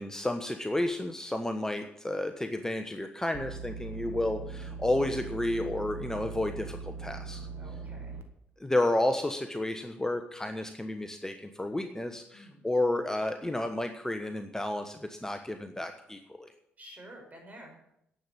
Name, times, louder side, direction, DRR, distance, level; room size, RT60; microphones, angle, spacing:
voice 1, 0.0-7.5 8.6-16.5, left 1 dB, 10° left, 6 dB, 1.2 m, -31 dB
sound 1, 3.3-8.2, right 4 dB, 65° right, 1.5 m, -40 dB
voice 2, 7.5-8.2 12.3-12.7 16.8-17.8, equal, 35° right, 2 dB, 5.7 m, -50 dB
11.0 x 8.0 x 8.8 m, 0.75 s
hypercardioid pair, 45°, 5 cm